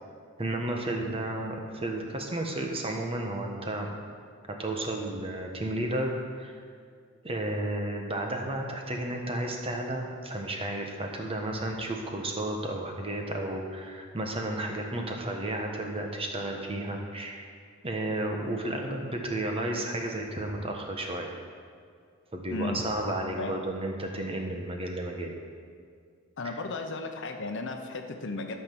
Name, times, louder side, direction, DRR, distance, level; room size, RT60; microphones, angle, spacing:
voice 1, 0.4-3.9 4.6-6.1 6.4-6.5 7.2-17.4 17.8-21.3 22.3-25.3, right 1 dB, 30° right, 1 dB, 1.2 m, -32 dB
voice 2, 22.5-22.8 23.4-23.5 26.4-28.6, left 3 dB, 60° left, 5 dB, 0.9 m, -34 dB
12.5 x 5.8 x 6.0 m, 2.1 s
head